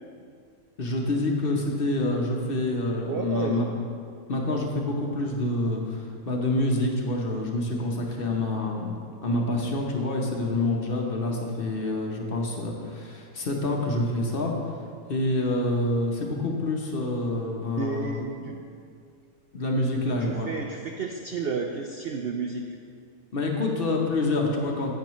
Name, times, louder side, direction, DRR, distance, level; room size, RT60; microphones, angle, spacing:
voice 1, 0.8-3.7 4.3-8.9 9.2-14.5 15.1-18.2 19.5-20.5 23.3-24.9, left 2 dB, 45° left, 0 dB, 1.0 m, -27 dB
voice 2, 3.1-3.7 17.7-18.6 19.9-22.6, right 5 dB, 70° right, 3 dB, 0.5 m, -32 dB
10.5 x 7.9 x 3.1 m, 2.3 s
omnidirectional pair, 1.5 m